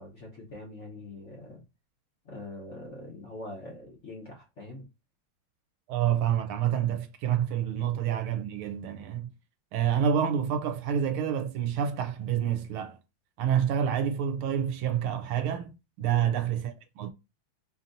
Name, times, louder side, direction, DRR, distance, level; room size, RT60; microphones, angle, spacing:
voice 1, 0.0-1.6 2.2-4.8 9.8-10.0 16.0-16.3, left 2 dB, 50° left, 0.9 m, -43 dB
voice 2, 5.9-9.3 9.7-13.0 13.4-15.7 16.0-17.1, right 9 dB, 85° right, 1.5 m, -28 dB
5.2 x 2.8 x 2.6 m
omnidirectional pair, 2.4 m